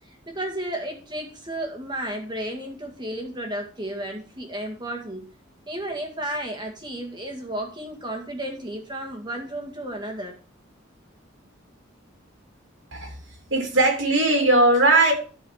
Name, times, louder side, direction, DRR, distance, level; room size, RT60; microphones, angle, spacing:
voice 1, 0.1-5.3 5.7-10.3, right 1 dB, 20° right, 2 dB, 2.0 m, -33 dB
voice 2, 13.5-15.1, right 2 dB, 70° right, 2 dB, 2.9 m, -18 dB
12.5 x 4.8 x 4.7 m, 0.38 s
head